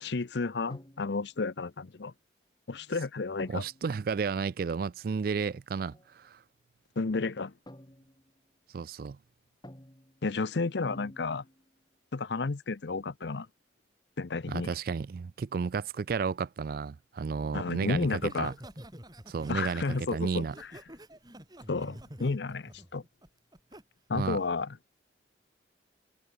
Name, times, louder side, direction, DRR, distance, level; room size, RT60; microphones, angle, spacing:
voice 1, 0.0-2.1 2.7-3.6 7.0-7.5 10.2-11.4 12.1-13.5 14.2-14.7 17.5-18.5 19.5-20.5 21.7-23.0 24.1-24.8, left 3 dB, 70° left, 0.7 m, -32 dB
sound 1, 0.7-1.4 3.4-4.0 5.9-6.1 7.7-8.4 9.6-10.3 10.8-11.8, equal, 20° left, 2.6 m, -51 dB
voice 2, 3.5-6.4 8.7-9.2 14.5-18.5 19.3-20.5 24.1-24.4, right 5 dB, 50° right, 0.3 m, -32 dB
Laughter, 18.1-23.8 24.2-24.6, right 1 dB, 20° right, 4.8 m, -48 dB
head